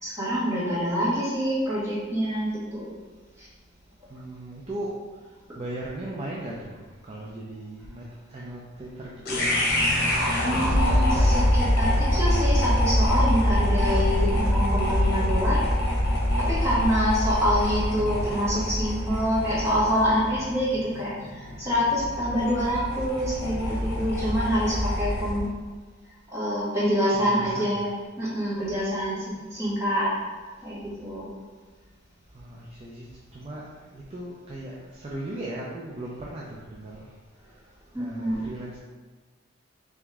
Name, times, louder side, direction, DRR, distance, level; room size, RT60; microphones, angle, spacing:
voice 1, 0.0-2.8 3.4-3.5 10.4-15.6 16.3-25.5 26.3-30.1 30.6-31.3 37.9-38.4, equal, 15° right, -9 dB, 1.4 m, -26 dB
voice 2, 4.1-4.9 5.6-8.0 8.3-9.4 17.9-18.5 27.1-27.9 32.3-37.1 38.0-38.8, right 1 dB, 30° right, -4 dB, 0.5 m, -38 dB
sound 1, 9.2-25.5, left 1 dB, 55° left, 0.9 m, -25 dB
3.6 x 3.0 x 3.5 m, 1.4 s
head